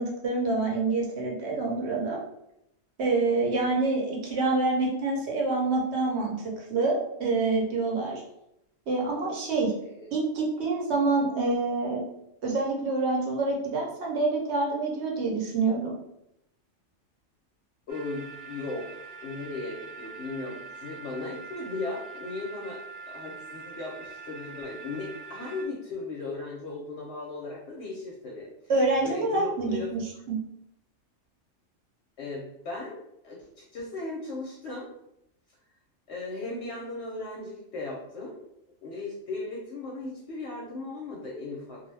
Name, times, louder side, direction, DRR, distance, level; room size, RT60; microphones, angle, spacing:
voice 1, 0.0-2.2 3.0-8.2 8.9-9.7 10.1-12.0 12.4-15.9 28.7-30.0 30.3-30.4, right 3 dB, 60° right, -2 dB, 0.9 m, -27 dB
voice 2, 17.9-18.9 19.2-22.8 23.1-28.5 29.0-29.9 32.2-33.0 33.2-34.9 36.1-38.4 38.8-41.8, left 3 dB, 65° left, -3 dB, 0.8 m, -37 dB
sound 1, 17.9-25.7, right 4 dB, 85° right, 0.3 m, -44 dB
2.4 x 2.1 x 3.2 m, 0.79 s
omnidirectional pair, 1.3 m